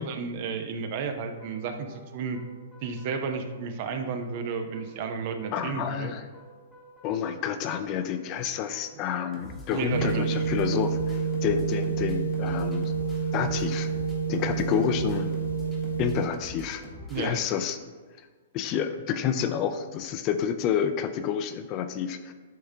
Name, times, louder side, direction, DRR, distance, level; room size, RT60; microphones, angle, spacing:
voice 1, 0.0-2.4 2.8-6.1 9.7-10.4 17.1-17.4, right 5 dB, 40° right, 7 dB, 0.6 m, -32 dB
sound 1, 1.3-18.0, left 1 dB, 5° left, 1.0 m, -46 dB
voice 2, 5.5-6.2 7.0-12.9 13.3-13.9 14.3-15.4 16.0-16.8 17.1-17.8 18.2-18.3 18.5-22.3, left 8 dB, 25° left, 9 dB, 0.3 m, -29 dB
sound 2, 9.9-16.3, right 6 dB, 85° right, 0.5 m, -28 dB
10.5 x 3.7 x 2.7 m, 1.4 s
hypercardioid pair, 165°, 0 cm